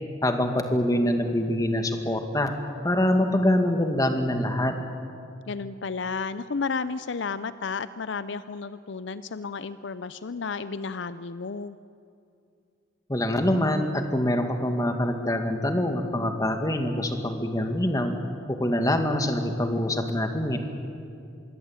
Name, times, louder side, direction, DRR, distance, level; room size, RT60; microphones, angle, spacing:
voice 1, 0.2-2.5 2.8-4.7 13.1-18.1 18.5-20.6, left 1 dB, 20° left, 5 dB, 2.2 m, -25 dB
voice 2, 5.5-11.8, left 5 dB, 65° left, 14 dB, 0.6 m, -32 dB
25.5 x 22.5 x 8.9 m, 2.6 s
head